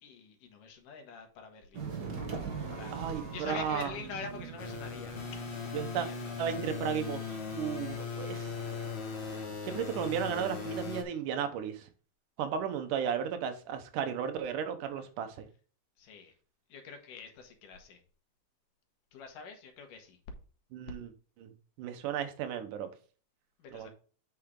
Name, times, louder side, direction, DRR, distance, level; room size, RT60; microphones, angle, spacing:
voice 1, 0.0-1.8 2.7-5.7 5.9-6.3 16.0-16.3 16.7-18.0 19.1-20.2 23.6-23.9, left 5 dB, 85° left, 3.1 m, -45 dB
sound 1, 1.7-8.6, right 5 dB, 40° right, 1.6 m, -43 dB
voice 2, 2.9-4.1 5.7-6.1 6.4-8.9 9.6-11.9 12.4-15.5 20.7-21.1 21.4-22.9 23.7-23.9, right 8 dB, 80° right, 2.6 m, -35 dB
sound 2, 4.6-11.0, left 5 dB, 45° left, 0.8 m, -38 dB
8.4 x 5.8 x 3.7 m
omnidirectional pair, 3.6 m